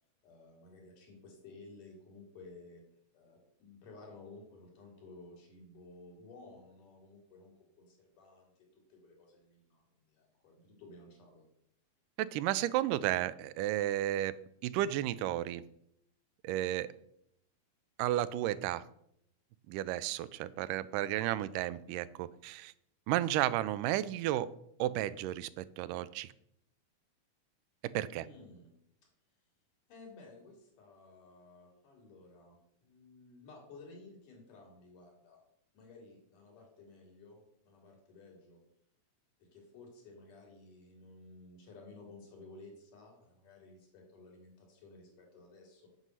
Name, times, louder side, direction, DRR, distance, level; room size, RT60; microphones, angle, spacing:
voice 1, 0.2-2.8 3.1-11.5 28.2-28.7 29.0-29.1 29.9-35.4 35.7-38.6 39.4-45.9, left 3 dB, 80° left, 0 dB, 4.1 m, -55 dB
voice 2, 12.2-14.3 14.6-15.6 16.4-16.9 18.0-18.8 19.7-22.7 23.1-24.5 24.8-26.3 27.8-28.3, right 13 dB, 85° right, 16 dB, 2.1 m, -33 dB
8.1 x 5.4 x 7.5 m, 0.72 s
omnidirectional pair, 3.7 m